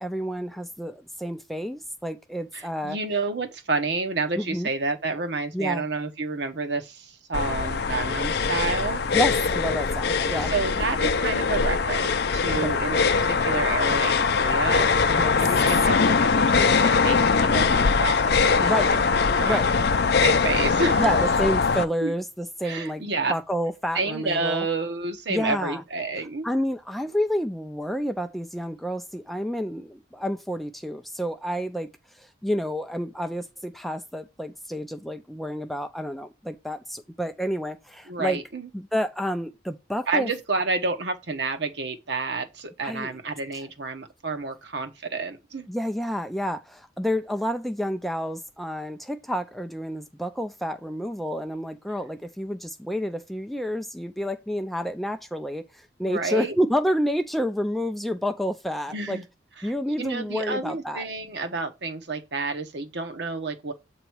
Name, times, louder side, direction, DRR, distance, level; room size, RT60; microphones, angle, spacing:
voice 1, 0.0-3.0 4.4-4.7 5.5-5.9 9.1-10.5 12.6-12.7 15.1-15.4 18.6-18.9 19.4-19.7 21.0-24.7 25.3-25.8 26.4-31.9 32.2-38.4 38.7-40.3 42.8-43.2 45.7-59.2 59.6-61.0, equal, ahead, 0.4 m, -29 dB
voice 2, 2.5-9.0 10.4-14.9 15.4-19.0 19.3-19.6 20.2-21.1 22.0-22.2 22.6-23.3 23.9-26.5 38.1-38.7 40.1-45.7 56.0-56.6 58.9-59.2 60.0-63.7, right 3 dB, 65° right, 1.0 m, -29 dB
sound 1, 7.3-21.8, left 5 dB, 55° left, 0.5 m, -22 dB
8.0 x 3.0 x 4.6 m
head